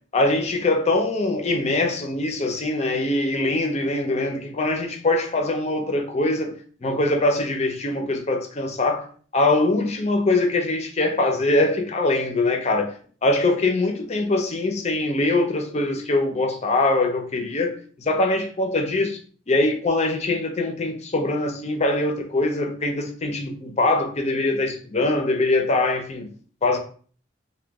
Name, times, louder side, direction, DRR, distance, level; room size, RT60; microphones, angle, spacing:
voice 1, 0.1-6.5 6.8-9.1 9.3-12.9 13.2-19.2 19.5-26.3 26.6-26.8, left 2 dB, 35° left, 0.5 m, -23 dB
2.9 x 2.2 x 3.4 m
head